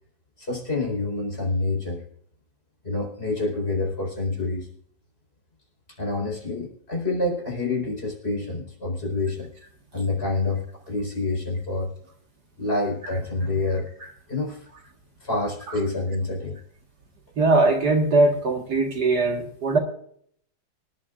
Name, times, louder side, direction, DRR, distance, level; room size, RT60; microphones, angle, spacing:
voice 1, 0.4-2.0 2.8-4.7 6.0-9.5 9.9-11.9 12.6-13.9 14.3-14.6 15.2-16.6, left 2 dB, 30° left, -1 dB, 4.5 m, -27 dB
voice 2, 17.4-19.8, right 2 dB, 55° right, 2 dB, 2.2 m, -20 dB
25.0 x 11.0 x 2.5 m, 0.64 s
omnidirectional pair, 2.1 m